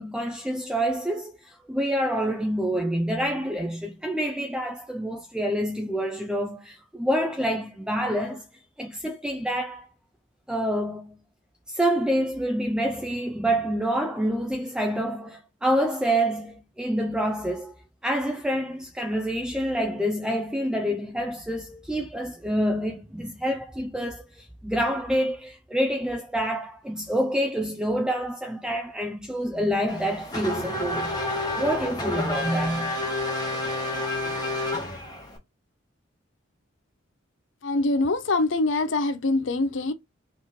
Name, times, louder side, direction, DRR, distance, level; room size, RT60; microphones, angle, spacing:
voice 1, 0.0-8.5 8.8-9.9 10.5-11.2 11.7-17.8 18.0-33.0, equal, 5° right, 0.3 m, -27 dB
Race car auto racing / Accelerating revving vroom, 29.9-35.4, left 1 dB, 20° left, 1.3 m, -29 dB
voice 2, 37.6-39.9, left 2 dB, 65° left, 0.6 m, -24 dB
4.0 x 3.0 x 3.6 m
head